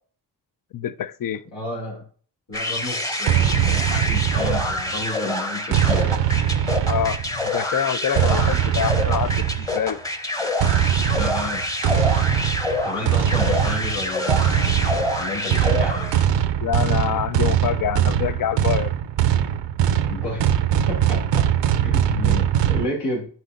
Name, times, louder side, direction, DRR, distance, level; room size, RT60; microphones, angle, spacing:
voice 1, 0.7-1.4 6.9-10.0 16.6-18.9, left 10 dB, 50° left, 0.5 m, -26 dB
voice 2, 1.5-2.0 2.5-6.4 11.2-11.6 12.8-16.1 20.1-20.4 20.9-21.4 21.8-23.3, left 2 dB, 75° left, 2.8 m, -31 dB
sound 1, 2.5-16.4, left 1 dB, 10° left, 0.9 m, -27 dB
sound 2, 3.3-5.0 5.7-7.4 8.2-9.8 10.6-22.9, right 10 dB, 75° right, 0.6 m, -21 dB
9.3 x 4.2 x 2.5 m
cardioid pair, 55°, 43 cm